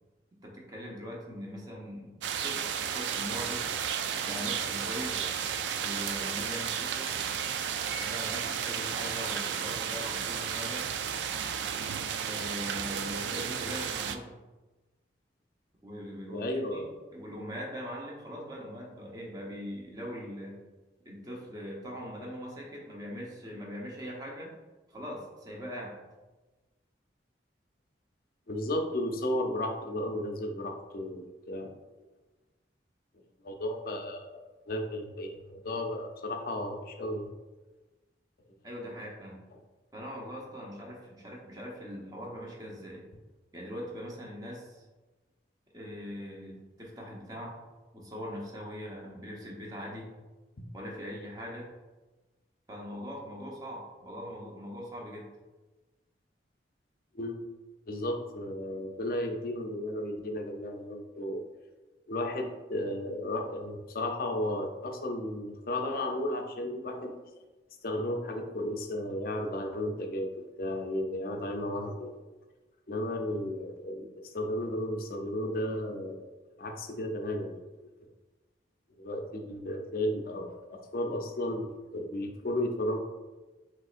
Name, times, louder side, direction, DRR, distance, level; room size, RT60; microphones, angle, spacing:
voice 1, 0.4-3.7 4.2-5.2 5.8-7.1 8.0-10.8 12.2-14.3 15.8-16.4 16.7-16.8 17.1-20.6 21.0-24.5 24.9-25.9 38.6-39.4 39.9-43.0 43.5-44.8 45.7-47.6 47.9-50.1 50.7-51.7 52.7-55.3, equal, 20° right, -3 dB, 0.9 m, -41 dB
sound 1, 2.2-14.2, right 8 dB, 75° right, 0.3 m, -33 dB
voice 2, 16.3-16.9 28.5-31.7 33.4-37.3 50.6-50.7 57.1-57.4 57.9-61.5 62.1-67.2 67.8-72.2 72.9-76.2 76.6-77.9 79.0-81.7 81.9-83.0, left 1 dB, 50° left, 3 dB, 0.5 m, -34 dB
6.1 x 3.2 x 2.5 m, 1.2 s
head